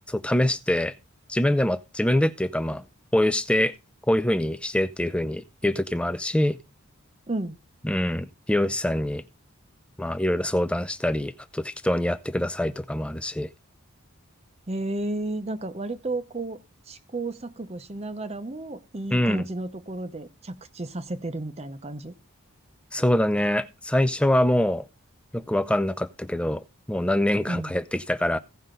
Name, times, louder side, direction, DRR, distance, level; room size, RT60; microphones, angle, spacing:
voice 1, 0.1-0.9 1.3-2.8 3.1-3.7 4.1-6.6 7.8-9.2 10.0-13.5 19.1-19.5 22.9-24.9 25.3-28.4, left 1 dB, 5° left, 0.4 m, -24 dB
voice 2, 7.3-7.6 14.7-16.6 16.9-22.1 27.5-27.7, right 2 dB, 30° right, 0.7 m, -32 dB
16.0 x 5.5 x 3.8 m
head